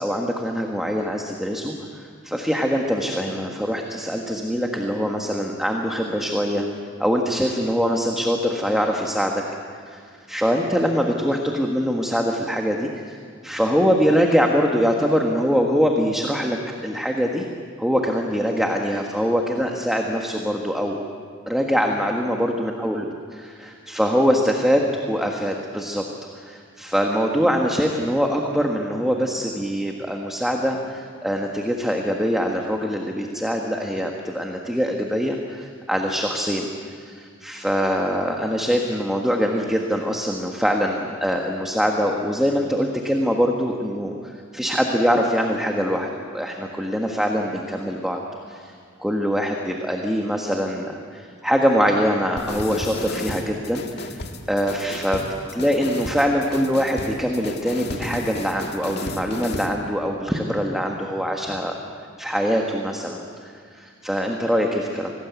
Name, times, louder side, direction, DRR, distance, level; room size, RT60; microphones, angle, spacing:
voice 1, 0.0-9.4 9.9-10.0 10.3-13.2 13.4-17.5 17.8-21.0 21.5-23.1 23.3-26.0 26.3-48.2 48.5-48.7 49.0-55.2 55.5-61.7 62.2-65.1, equal, ahead, 1 dB, 1.5 m, -23 dB
sound 1, 52.4-59.8, left 2 dB, 55° left, 1.8 m, -33 dB
26.5 x 18.5 x 8.2 m, 2.1 s
head